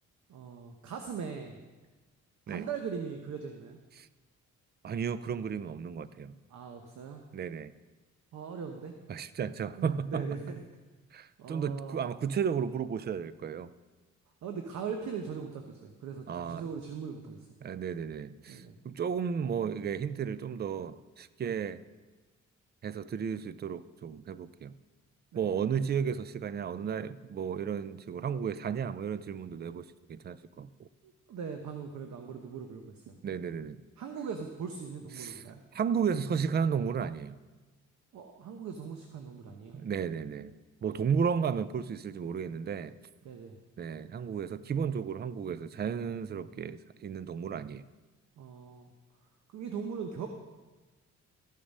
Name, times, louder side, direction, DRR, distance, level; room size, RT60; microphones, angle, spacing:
voice 1, 0.3-1.6 2.5-3.8 6.5-7.2 8.3-8.9 9.8-10.6 11.4-12.0 14.4-17.5 18.5-18.8 21.4-21.5 25.3-25.4 31.0-33.2 34.0-35.6 38.1-39.8 43.2-43.6 48.4-48.9 49.5-50.3, right 6 dB, 65° right, 4 dB, 1.0 m, -40 dB
voice 2, 4.8-6.4 7.3-7.7 9.1-10.3 11.1-13.7 16.3-16.7 17.6-21.8 22.8-24.7 25.4-30.9 33.2-33.8 35.2-35.4 35.7-37.4 39.7-40.5 40.8-42.9 43.8-47.8, right 7 dB, 35° right, 16 dB, 0.5 m, -33 dB
13.5 x 7.0 x 5.4 m, 1.3 s
cardioid pair, 90°, 30 cm